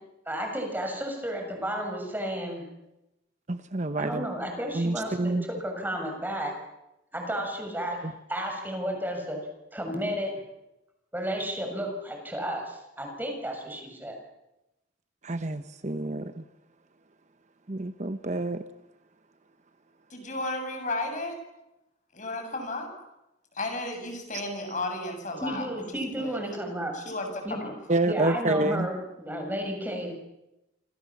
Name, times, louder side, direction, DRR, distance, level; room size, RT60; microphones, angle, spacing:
voice 1, 0.3-2.6 4.0-6.5 7.1-9.4 9.7-10.3 11.1-14.2 25.4-26.9 27.4-27.7 28.0-30.1, equal, 10° right, 3 dB, 6.6 m, -32 dB
voice 2, 3.5-4.3 4.7-5.4 15.2-16.4 17.7-18.6 27.9-28.9, right 2 dB, 40° right, 10 dB, 1.0 m, -28 dB
voice 3, 20.1-21.4 22.1-22.9 23.5-25.8 26.2-26.4 26.9-27.7, left 2 dB, 40° left, 5 dB, 7.1 m, -33 dB
28.0 x 26.5 x 7.3 m, 0.93 s
head